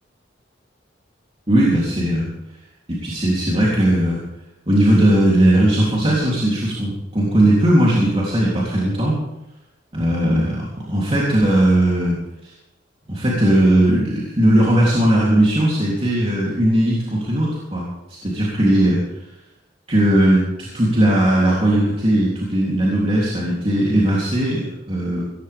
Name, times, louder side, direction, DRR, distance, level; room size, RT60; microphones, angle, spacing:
voice 1, 1.5-2.3 2.9-4.2 4.7-9.2 9.9-12.5 13.1-19.0 19.9-25.2, right 1 dB, 30° right, -6 dB, 3.5 m, -18 dB
18.5 x 15.0 x 3.7 m, 0.92 s
head